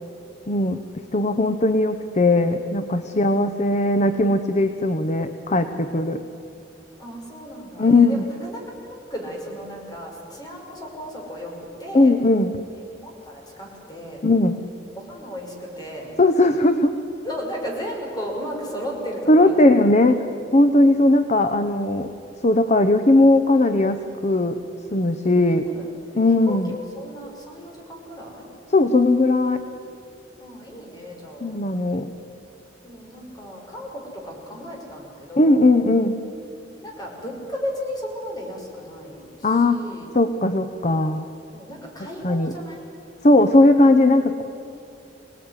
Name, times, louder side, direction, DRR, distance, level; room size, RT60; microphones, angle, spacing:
voice 1, 0.5-0.8 1.1-6.2 7.8-8.2 11.9-12.5 14.2-14.6 16.2-16.9 19.3-20.2 20.5-22.1 22.4-24.6 24.9-25.7 26.1-26.7 28.7-29.6 31.4-32.1 35.4-36.2 39.4-39.8 40.1-41.3 42.2-42.5 43.2-44.4, left 2 dB, 40° left, 9 dB, 0.9 m, -18 dB
voice 2, 7.0-12.2 13.0-14.3 14.9-16.1 17.2-19.8 20.8-21.0 25.6-26.2 26.5-28.5 30.4-31.5 32.8-35.6 36.8-40.1 41.5-42.8, equal, 25° left, -1 dB, 5.7 m, -35 dB
25.0 x 18.5 x 9.8 m, 2.8 s
head